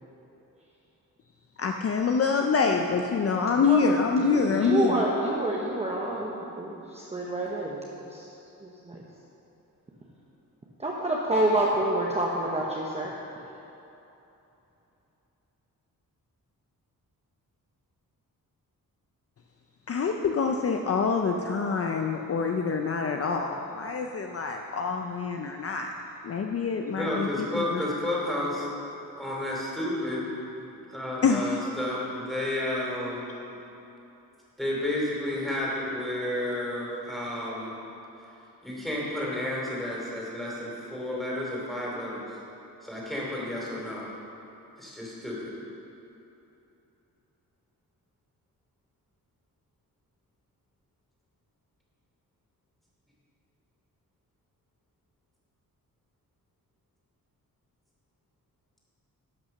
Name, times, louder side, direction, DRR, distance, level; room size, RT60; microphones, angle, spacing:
voice 1, 1.6-4.9 19.9-25.9 26.2-27.8 31.2-31.6, left 5 dB, 45° left, 3 dB, 0.5 m, -26 dB
voice 2, 3.5-3.9 4.2-9.0 10.8-13.2, right 1 dB, 20° right, -3 dB, 0.9 m, -28 dB
voice 3, 26.9-30.2 30.6-33.3 34.6-37.7 38.6-42.2 42.8-44.1 44.8-45.5, left 1 dB, ahead, -5 dB, 2.8 m, -31 dB
11.5 x 5.9 x 6.5 m, 3.0 s
wide cardioid pair, 135°, 35 cm